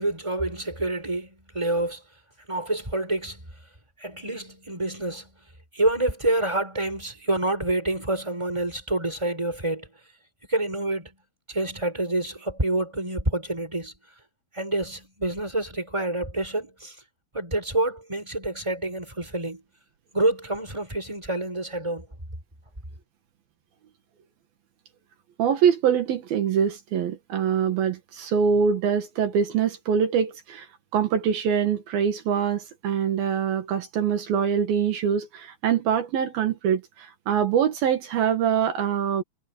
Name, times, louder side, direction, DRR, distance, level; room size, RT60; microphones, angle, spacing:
voice 1, 0.0-2.0 2.5-3.5 4.0-5.3 5.7-9.9 10.5-11.1 11.5-13.9 14.5-17.0 17.3-19.6 20.1-22.1, right 2 dB, 5° right, 6.4 m, -27 dB
voice 2, 25.4-30.7 30.9-39.2, right 7 dB, 75° right, 3.5 m, -24 dB
omnidirectional pair, 4.3 m